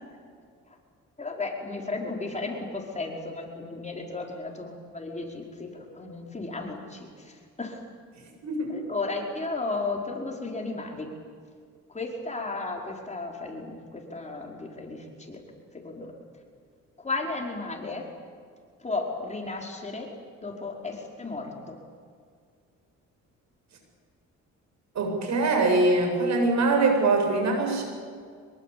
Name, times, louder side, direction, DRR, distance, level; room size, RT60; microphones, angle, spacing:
voice 1, 1.2-7.8 8.7-11.1 11.9-15.4 15.7-16.1 17.0-18.0 18.8-20.1 20.4-21.8, left 3 dB, 25° left, 0 dB, 5.3 m, -34 dB
voice 2, 8.4-8.8 24.9-27.8, right 2 dB, 65° right, 3 dB, 7.9 m, -23 dB
25.5 x 22.5 x 8.7 m, 2.1 s
cardioid pair, 90°, 30 cm